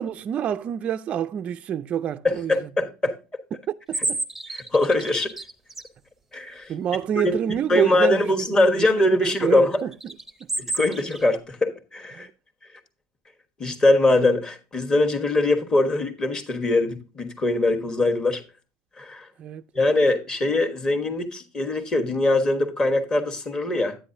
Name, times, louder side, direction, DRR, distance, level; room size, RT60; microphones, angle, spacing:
voice 1, 0.0-2.7 3.7-4.2 6.7-8.3 8.6-10.1 10.4-10.5 12.1-12.3 19.4-19.6, right 9 dB, 30° right, 0.3 m, -27 dB
voice 2, 2.2-3.1 4.5-5.3 6.3-6.7 7.1-9.8 10.6-12.3 13.6-18.4 19.0-19.3 19.7-24.0, left 2 dB, 20° left, 1.3 m, -22 dB
sound 1, 3.9-5.9 9.9-11.3, right 3 dB, 5° right, 0.7 m, -30 dB
10.0 x 8.9 x 2.6 m
supercardioid pair, 135°, 4 cm